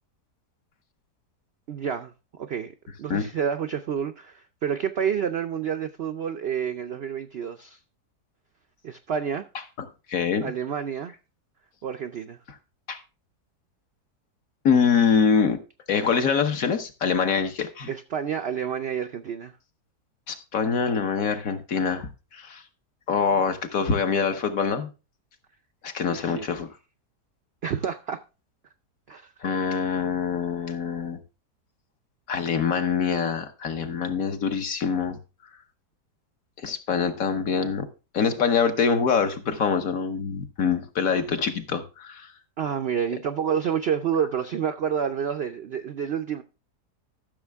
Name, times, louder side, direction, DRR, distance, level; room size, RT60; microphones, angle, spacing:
voice 1, 1.7-2.7 3.0-7.8 8.8-9.5 10.4-11.1 11.8-12.4 17.9-19.5 26.1-26.5 27.6-28.2 29.1-29.3 42.6-46.4, right 8 dB, 65° right, 0.6 m, -29 dB
voice 2, 10.1-10.5 12.9-13.0 14.6-15.6 15.9-17.9 20.3-22.6 23.1-24.9 25.8-26.7 29.4-31.2 32.3-35.2 36.6-37.9 38.1-42.3, left 6 dB, 60° left, 1.4 m, -24 dB
14.0 x 6.5 x 3.5 m
omnidirectional pair, 1.7 m